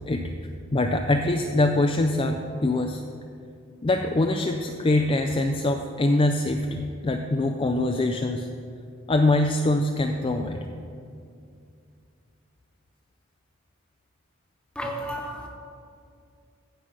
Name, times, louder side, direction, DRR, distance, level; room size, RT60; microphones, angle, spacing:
voice 1, 0.7-3.0 3.8-8.5 9.1-10.7, left 2 dB, 25° left, 4 dB, 0.4 m, -23 dB
voice 2, 14.7-15.5, equal, 5° left, 0 dB, 1.1 m, -32 dB
15.0 x 5.4 x 5.1 m, 2.4 s
head